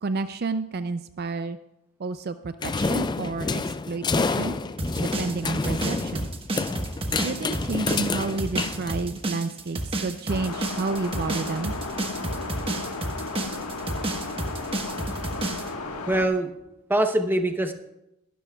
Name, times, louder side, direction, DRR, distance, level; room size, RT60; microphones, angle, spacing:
voice 1, 0.0-1.6 2.0-4.6 5.0-6.3 7.2-11.7, right 3 dB, 45° right, 11 dB, 0.4 m, -30 dB
sound 1, 2.6-9.3, left 4 dB, 20° left, 0.3 m, -28 dB
sound 2, 4.8-15.7, right 2 dB, 25° right, 1.2 m, -30 dB
sound 3, 10.3-16.3, left 3 dB, 75° left, 1.5 m, -34 dB
voice 2, 16.1-16.5 16.9-17.7, right 1 dB, 10° right, 6 dB, 0.8 m, -23 dB
22.0 x 12.5 x 2.3 m, 0.89 s
head